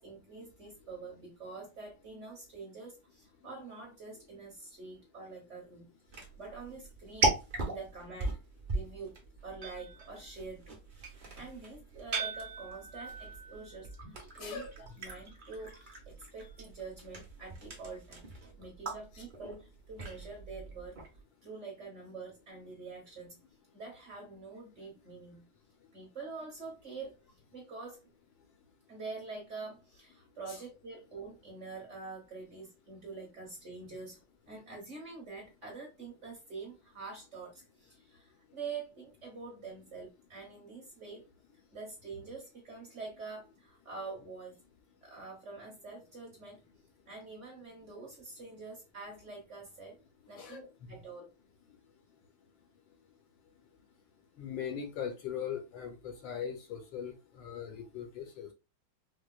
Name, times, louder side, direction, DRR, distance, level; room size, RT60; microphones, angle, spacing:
voice 1, 0.0-5.9 6.4-7.3 7.7-8.4 8.7-10.8 11.3-14.7 15.0-18.3 18.6-21.0 21.4-23.4 23.7-25.4 25.9-27.1 27.5-28.0 28.9-34.2 34.5-41.2 41.7-44.5 45.0-46.6 47.1-50.0 50.3-51.3, right 4 dB, 45° right, 1.1 m, -46 dB
sound 1, 6.1-21.2, right 3 dB, 70° right, 0.4 m, -38 dB
voice 2, 14.3-14.7 19.1-19.2 50.3-50.9 54.4-58.5, left 8 dB, 70° left, 1.3 m, -40 dB
4.6 x 2.1 x 2.2 m
omnidirectional pair, 2.3 m